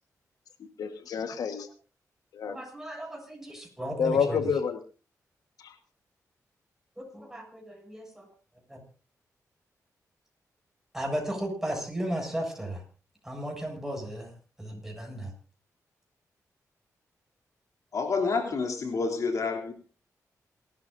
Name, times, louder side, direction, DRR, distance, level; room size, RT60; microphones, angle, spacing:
voice 1, 0.8-1.7 2.3-2.6 4.0-4.8 5.6-5.7, left 6 dB, 85° left, 7 dB, 1.4 m, -28 dB
voice 2, 2.5-4.4 7.0-8.3 8.7-8.8 10.9-12.8 13.2-14.3 14.6-15.3, right 1 dB, 5° right, 2 dB, 7.1 m, -35 dB
voice 3, 17.9-19.7, left 4 dB, 60° left, 3 dB, 3.1 m, -28 dB
28.0 x 13.0 x 2.7 m, 0.36 s
cardioid pair, 90°, 6 cm